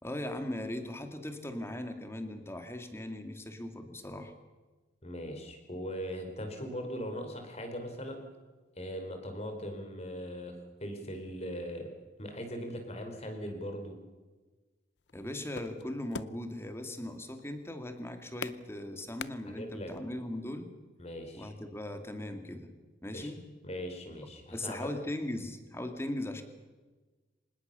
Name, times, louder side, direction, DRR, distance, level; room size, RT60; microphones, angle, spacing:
voice 1, 0.0-4.3 15.1-20.7 21.3-22.7 23.0-23.4 24.5-26.4, left 1 dB, 15° left, 7 dB, 2.4 m, -39 dB
voice 2, 5.0-8.3 8.8-11.9 12.2-14.0 19.5-19.9 21.0-21.5 23.1-23.3 23.6-24.9, equal, 35° left, 5 dB, 4.7 m, -40 dB
sound 1, 15.0-20.0, left 5 dB, 80° left, 0.7 m, -44 dB
25.0 x 20.0 x 7.0 m, 1.3 s
head